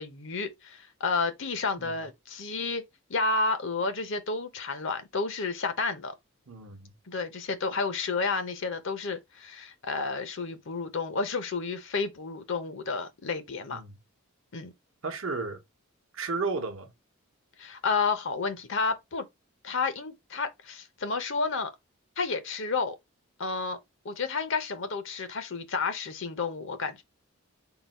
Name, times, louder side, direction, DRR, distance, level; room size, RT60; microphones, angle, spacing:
voice 1, 0.0-2.8 3.1-6.1 7.1-13.8 14.5-14.7 17.6-19.3 19.6-21.7 22.2-23.0 23.4-23.8 24.0-27.0, left 4 dB, 60° left, 0.8 m, -31 dB
voice 2, 6.5-7.0 13.7-14.0 15.0-15.6 16.1-16.9, right 4 dB, 65° right, 0.8 m, -33 dB
3.9 x 2.3 x 4.1 m
head